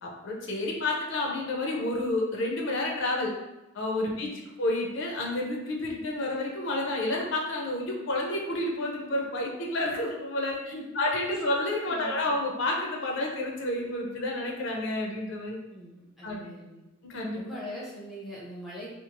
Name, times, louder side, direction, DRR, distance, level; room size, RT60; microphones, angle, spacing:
voice 1, 0.0-3.3 3.7-4.3 4.6-10.5 11.0-15.6 16.2-16.5 17.0-17.4, left 2 dB, 60° left, 0 dB, 0.5 m, -30 dB
voice 2, 4.0-4.4 10.5-11.0 11.3-11.5 11.9-12.3 15.7-16.8 17.3-18.9, equal, ahead, -6 dB, 0.5 m, -42 dB
2.9 x 2.3 x 2.5 m, 1.0 s
head